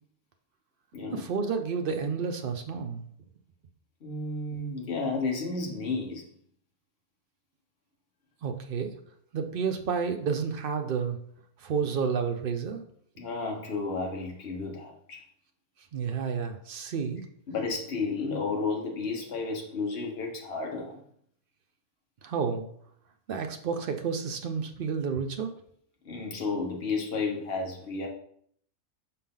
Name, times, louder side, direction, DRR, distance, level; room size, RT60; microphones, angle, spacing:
voice 1, 1.1-3.1 8.4-9.0 9.3-11.2 11.6-12.8 15.9-17.3 22.2-22.7 23.3-25.5, right 6 dB, 65° right, 5 dB, 0.5 m, -30 dB
voice 2, 4.0-6.2 13.2-15.2 17.5-21.0 26.0-28.1, left 4 dB, 45° left, 1 dB, 1.3 m, -32 dB
6.7 x 4.2 x 3.8 m, 0.64 s
omnidirectional pair, 1.6 m